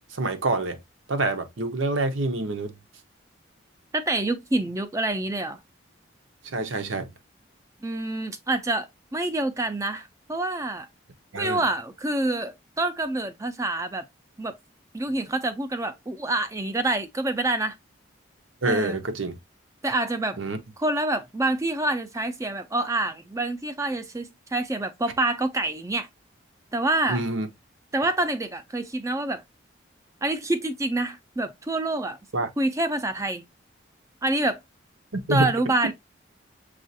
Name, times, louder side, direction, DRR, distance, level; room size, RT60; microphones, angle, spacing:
voice 1, 0.1-0.8 1.1-2.8 6.4-7.1 11.3-11.6 18.6-19.4 20.4-20.6 27.1-27.5 32.3-32.5 35.3-35.7, right 2 dB, 85° right, 0.8 m, -26 dB
voice 2, 3.9-5.6 7.8-10.9 11.4-14.0 14.4-14.6 14.9-17.8 18.7-19.0 19.8-20.4 20.8-26.1 26.7-27.2 27.9-29.4 30.2-32.2 32.6-33.5 34.2-34.6 35.3-35.9, right 2 dB, 15° right, 0.5 m, -27 dB
6.2 x 2.4 x 2.6 m
head